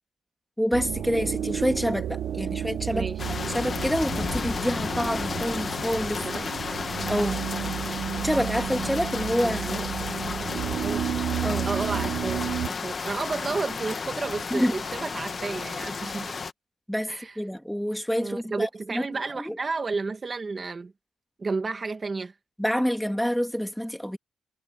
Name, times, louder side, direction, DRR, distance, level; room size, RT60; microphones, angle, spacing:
voice 1, 0.6-3.1 3.5-6.3 7.1-7.4 8.2-9.8 11.4-11.7 14.5-14.7 16.9-19.0 19.3-19.6 22.6-24.2, equal, ahead, 2.5 m, -27 dB
sound 1, 0.7-12.7, right 10 dB, 60° right, 0.8 m, -32 dB
voice 2, 2.9-3.3 6.2-6.5 9.4-9.9 10.2-11.1 11.6-16.4 17.1-17.4 18.2-20.9 21.4-22.3, right 4 dB, 25° right, 1.7 m, -32 dB
sound 2, 3.2-16.5, left 5 dB, 30° left, 1.5 m, -32 dB
cardioid pair, 150°, 0 cm